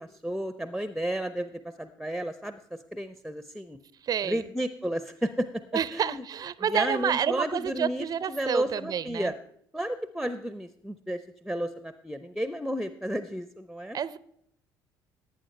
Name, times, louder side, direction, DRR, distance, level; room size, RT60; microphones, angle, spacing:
voice 1, 0.0-3.8 4.3-5.5 5.9-6.2 6.7-9.3 9.7-14.0, equal, ahead, 12 dB, 0.7 m, -32 dB
voice 2, 4.0-4.4 5.7-9.3 13.9-14.2, right 8 dB, 35° right, 18 dB, 0.5 m, -29 dB
18.5 x 8.9 x 3.3 m, 0.71 s
figure-of-eight pair, 55°, 11 cm